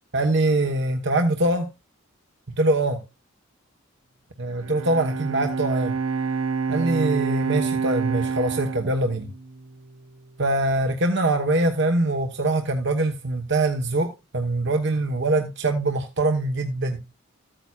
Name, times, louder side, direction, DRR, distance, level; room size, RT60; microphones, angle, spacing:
voice 1, 0.1-1.7 2.6-3.0 4.4-5.9 6.7-9.3 10.4-14.1 14.3-17.0, right 2 dB, 55° right, 1.1 m, -23 dB
Bowed string instrument, 4.5-9.9, right 5 dB, 85° right, 1.0 m, -28 dB
14.0 x 8.9 x 2.3 m
head